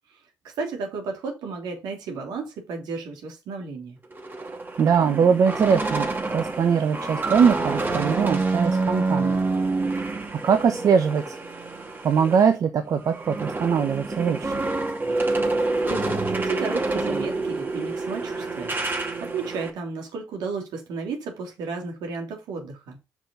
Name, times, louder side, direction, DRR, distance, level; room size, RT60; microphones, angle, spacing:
voice 1, 0.4-4.0 15.9-23.0, right 4 dB, 80° right, 3.2 m, -33 dB
sound 1, 4.1-12.5 12.8-19.7, right 3 dB, 30° right, 2.3 m, -27 dB
voice 2, 4.4-6.1 6.3-9.4 9.8-11.4 12.0-14.5, right 6 dB, 55° right, 1.0 m, -22 dB
6.1 x 5.7 x 5.6 m
supercardioid pair, 70°, 7 cm